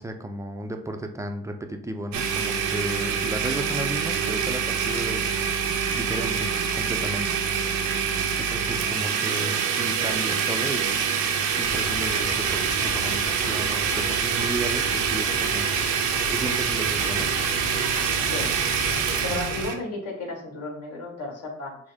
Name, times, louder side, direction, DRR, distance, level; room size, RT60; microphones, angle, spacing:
voice 1, 0.0-5.5 5.9-7.4 8.4-11.3 11.6-15.7 16.3-17.3, right 1 dB, 10° right, 5 dB, 0.5 m, -34 dB
Domestic sounds home sounds, 2.1-19.7, right 7 dB, 80° right, 0.7 m, -25 dB
Rain, 11.6-19.6, left 1 dB, 75° left, 1.6 m, -36 dB
voice 2, 18.2-18.8 19.2-21.8, left 2 dB, 55° left, -1 dB, 1.8 m, -34 dB
6.2 x 2.1 x 3.5 m, 0.65 s
cardioid pair, 90°, 30 cm